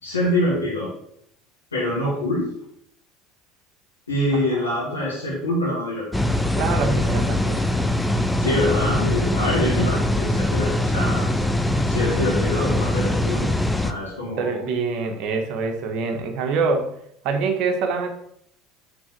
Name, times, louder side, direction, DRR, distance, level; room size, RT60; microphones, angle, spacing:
voice 1, 0.0-0.9 1.7-2.5 4.1-6.3 8.4-11.4 11.9-13.5 13.8-14.6, left 1 dB, 85° left, -7 dB, 1.9 m, -25 dB
sound 1, 6.1-13.9, left 1 dB, 5° left, 0.5 m, -22 dB
voice 2, 6.5-7.8 9.6-9.9 14.4-16.9 17.2-18.1, right 4 dB, 50° right, 4 dB, 1.2 m, -25 dB
6.1 x 3.8 x 6.2 m, 0.71 s
figure-of-eight pair, 65°, 0 cm